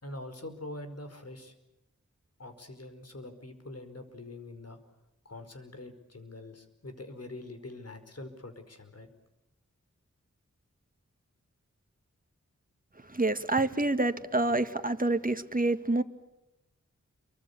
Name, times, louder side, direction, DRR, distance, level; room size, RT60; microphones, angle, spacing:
voice 1, 0.0-1.5 2.4-4.8 5.2-9.1, left 2 dB, 55° left, 5.1 m, -44 dB
voice 2, 13.1-16.0, right 2 dB, 30° right, 2.0 m, -27 dB
28.5 x 24.0 x 7.0 m
wide cardioid pair, 50°, 30 cm